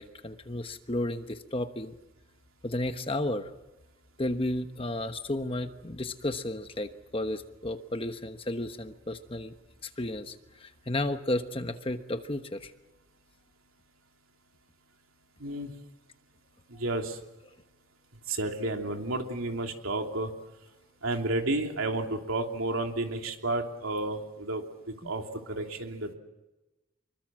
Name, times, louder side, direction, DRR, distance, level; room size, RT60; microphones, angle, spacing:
voice 1, 0.0-2.0 2.6-3.5 4.2-9.5 9.8-12.7 25.0-25.1, left 1 dB, 25° left, 8 dB, 1.1 m, -33 dB
voice 2, 15.4-15.7 16.7-17.2 18.3-20.3 21.0-26.1, right 2 dB, 85° right, 3 dB, 3.1 m, -31 dB
26.0 x 23.0 x 7.6 m, 1.1 s
head